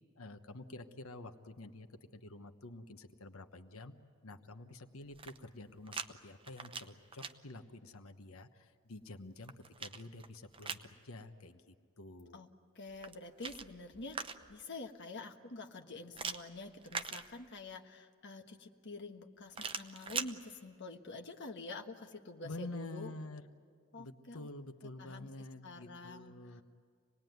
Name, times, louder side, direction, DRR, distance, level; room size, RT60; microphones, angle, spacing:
voice 1, 0.2-1.9 2.1-3.9 4.2-9.5 9.8-12.4 22.4-23.4 24.0-26.6, left 2 dB, 70° left, 8 dB, 1.1 m, -49 dB
sound 1, 5.0-6.1 6.4-7.3 9.0-10.9 12.9-14.7 16.1-17.7 19.5-20.3, right 5 dB, 25° right, 0.8 m, -43 dB
voice 2, 12.7-23.1 23.9-24.5 25.0-25.3 25.6-26.6, left 2 dB, 55° left, 4 dB, 1.5 m, -47 dB
26.5 x 19.5 x 9.3 m, 2.1 s
head